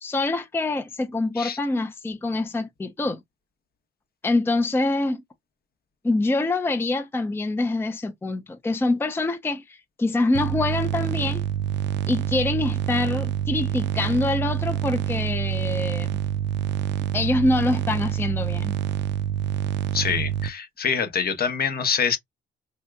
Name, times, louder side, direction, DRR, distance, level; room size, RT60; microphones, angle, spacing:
voice 1, 0.0-3.2 4.2-5.2 6.0-11.4 12.1-16.2 17.1-18.7, left 2 dB, 10° left, 0.5 m, -25 dB
sound 1, 10.3-20.5, right 10 dB, 65° right, 0.5 m, -27 dB
voice 2, 19.9-22.2, left 6 dB, 50° left, 0.9 m, -25 dB
3.4 x 2.8 x 2.2 m
cardioid pair, 90°, 20 cm